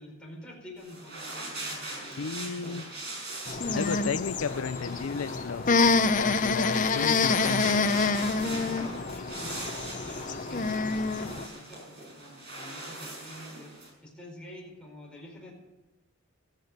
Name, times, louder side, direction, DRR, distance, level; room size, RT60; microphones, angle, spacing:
voice 1, 0.0-3.6 8.2-15.5, left 1 dB, 5° left, 4.5 m, -47 dB
sound 1, 0.8-13.9, right 2 dB, 50° right, 6.3 m, -41 dB
voice 2, 2.2-2.8 3.7-5.7 6.2-8.0, left 5 dB, 90° left, 0.5 m, -33 dB
sound 2, 3.5-11.5, left 4 dB, 40° left, 0.6 m, -27 dB
15.0 x 14.5 x 6.6 m
head